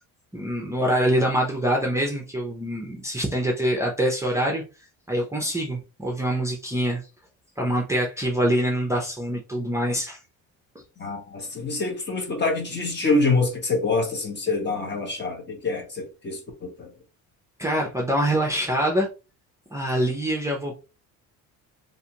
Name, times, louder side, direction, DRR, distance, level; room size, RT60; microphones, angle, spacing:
voice 1, 0.3-4.6 5.1-7.0 7.6-10.2 17.6-19.1 19.7-20.7, right 1 dB, 10° right, 0.5 m, -25 dB
voice 2, 11.0-16.9, left 3 dB, 30° left, 0.9 m, -26 dB
2.6 x 2.3 x 2.8 m
cardioid pair, 105°, 37 cm